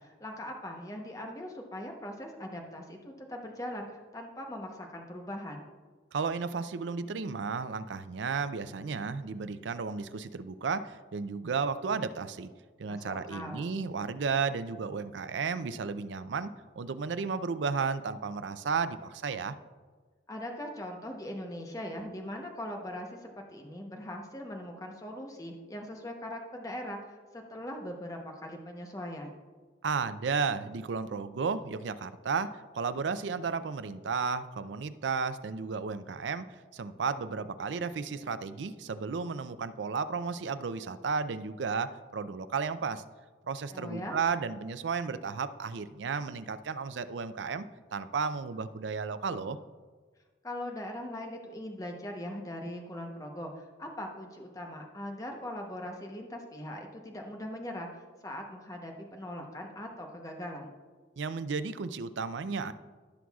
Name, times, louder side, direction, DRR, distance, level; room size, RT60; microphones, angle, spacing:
voice 1, 0.0-5.7 12.9-13.7 20.3-29.4 43.7-44.2 50.4-60.7, left 1 dB, 20° left, 2 dB, 0.9 m, -40 dB
voice 2, 6.1-12.5 12.8-19.5 29.8-36.5 36.7-43.0 43.5-47.6 47.9-49.6 61.2-62.7, right 5 dB, 80° right, 12 dB, 0.4 m, -33 dB
15.0 x 6.3 x 2.4 m, 1.4 s
head